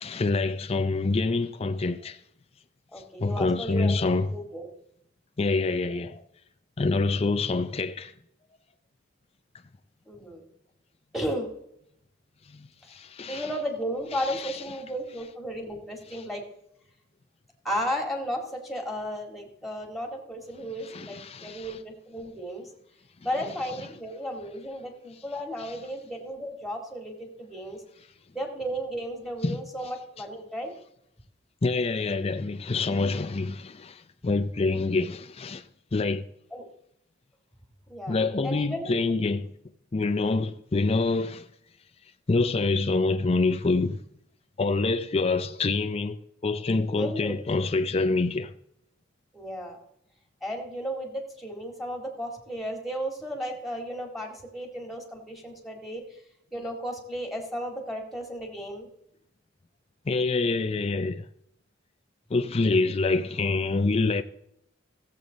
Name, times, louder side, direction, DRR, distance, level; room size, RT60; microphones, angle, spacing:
voice 1, 0.0-2.2 3.2-4.3 5.4-6.2 6.8-8.1 12.5-13.5 14.2-14.6 16.1-16.2 20.8-21.8 25.6-25.8 29.4-29.6 31.6-35.6 35.9-36.2 38.1-39.5 39.9-41.5 42.3-44.0 44.6-46.2 46.4-48.5 60.1-61.3 62.3-64.2, left 3 dB, 35° left, 0.5 m, -26 dB
voice 2, 2.9-4.7 10.1-10.5 11.1-11.5 13.3-16.4 17.6-22.7 23.2-27.8 28.3-30.7 36.5-36.7 37.9-38.2 38.4-38.9 47.0-47.4 49.3-49.8 50.4-56.0 56.5-58.9, equal, ahead, 2.0 m, -34 dB
15.5 x 7.6 x 4.0 m
head